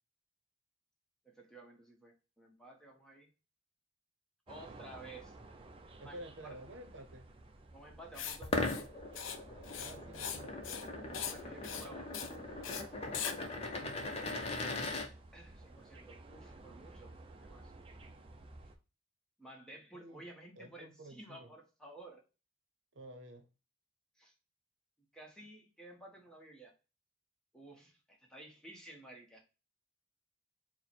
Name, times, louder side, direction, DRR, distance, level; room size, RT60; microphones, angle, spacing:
voice 1, 1.2-3.3 4.5-5.4 6.0-6.6 7.7-8.8 11.3-12.2 15.3-17.1 17.4-17.7 19.4-22.2 24.2-24.3 25.1-26.7 27.5-29.4, right 1 dB, 5° left, 0 dB, 0.8 m, -53 dB
sound 1, 4.5-18.8, right 2 dB, 30° right, 0.5 m, -54 dB
voice 2, 6.0-7.3 9.8-10.6 13.8-14.5 19.9-20.3 20.6-21.5 22.9-23.5, right 1 dB, 70° right, 6 dB, 0.8 m, -51 dB
Writing, 8.1-8.4 8.6-8.8 9.1-9.4 9.6-10.4 10.6-10.9 11.1-11.4 11.6-11.9 12.1-12.3 12.6-12.8 13.1-13.3, left 8 dB, 80° left, 0.5 m, -40 dB
sound 2, 8.4-15.1, left 2 dB, 30° left, 0.5 m, -39 dB
4.4 x 2.1 x 4.1 m, 0.31 s
head